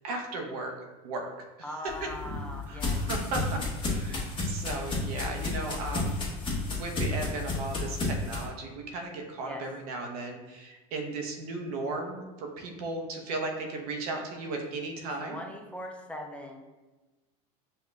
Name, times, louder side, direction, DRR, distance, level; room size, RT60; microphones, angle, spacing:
voice 1, 0.0-1.5 2.7-6.2 6.7-15.4, right 2 dB, 85° right, 2 dB, 0.8 m, -36 dB
voice 2, 1.6-3.0 9.4-9.6 15.3-16.7, left 1 dB, 5° left, 1 dB, 0.6 m, -40 dB
sound 1, 1.9-8.5, left 2 dB, 25° left, 1.3 m, -32 dB
5.4 x 2.3 x 3.1 m, 1.1 s
supercardioid pair, 105°, 19 cm